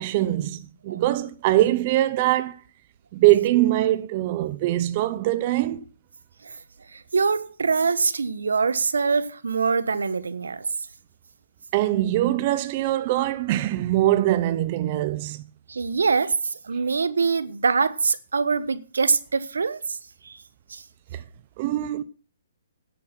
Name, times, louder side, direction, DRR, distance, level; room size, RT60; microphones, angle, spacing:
voice 1, 0.0-2.5 3.1-5.8 11.7-15.4 21.1-21.2 21.6-22.0, right 15 dB, 35° right, 0.8 m, -22 dB
voice 2, 6.9-10.7 15.7-20.0 20.2-20.4 20.7-20.8, right 5 dB, 85° right, 1.1 m, -24 dB
10.5 x 8.3 x 6.0 m
hypercardioid pair, 150°, 0 cm